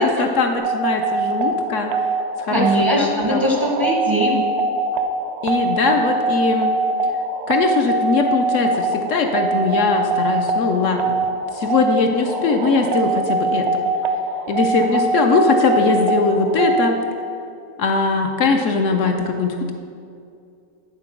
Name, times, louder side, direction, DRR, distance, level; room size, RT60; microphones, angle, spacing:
voice 1, 0.0-1.9 2.4-3.4 5.4-6.7 7.5-11.2 11.5-13.7 14.5-17.0 17.8-19.7, left 4 dB, 65° left, 4 dB, 0.9 m, -20 dB
sound 1, 0.6-16.9, right 3 dB, 85° right, 1.1 m, -22 dB
voice 2, 2.5-4.4 14.9-15.0, equal, 25° right, -2 dB, 0.5 m, -20 dB
9.8 x 3.7 x 5.8 m, 2.4 s
omnidirectional pair, 1.6 m